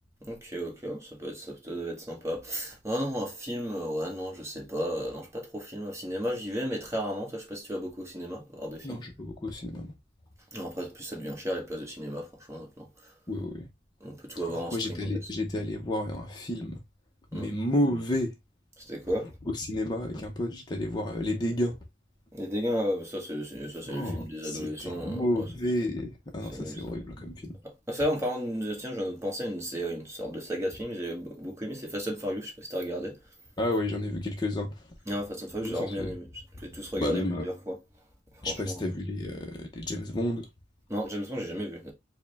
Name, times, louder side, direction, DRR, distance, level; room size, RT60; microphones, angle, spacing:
voice 1, 0.2-9.0 10.5-13.1 14.0-14.8 15.0-15.3 17.3-17.5 18.8-19.3 22.3-25.4 26.4-26.9 27.6-33.2 35.1-36.3 36.6-37.7 38.3-38.8 40.9-41.9, equal, 15° right, 1.2 m, -34 dB
voice 2, 8.8-9.9 13.3-13.7 14.5-16.8 17.3-18.3 19.5-21.8 23.9-27.6 33.6-35.0 35.6-36.1 37.0-37.4 38.4-40.5, left 1 dB, 20° left, 0.6 m, -31 dB
4.7 x 2.1 x 3.3 m
head